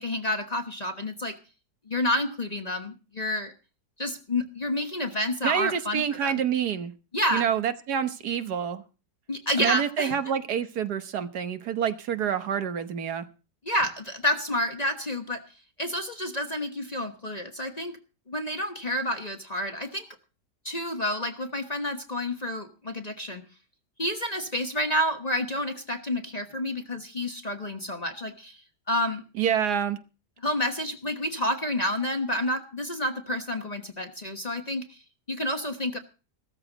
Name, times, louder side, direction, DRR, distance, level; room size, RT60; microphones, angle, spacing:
voice 1, 0.0-1.3 1.9-3.5 4.0-6.3 7.1-7.5 9.3-10.1 13.6-15.4 15.8-18.0 18.3-20.0 20.6-23.4 24.0-28.6 28.9-29.2 30.4-35.0 35.3-36.0, left 1 dB, 25° left, 6 dB, 1.1 m, -29 dB
voice 2, 5.4-6.9 7.3-8.8 9.6-13.3 29.4-30.0, right 8 dB, 70° right, 10 dB, 1.6 m, -27 dB
16.0 x 13.5 x 4.0 m, 0.34 s
omnidirectional pair, 1.8 m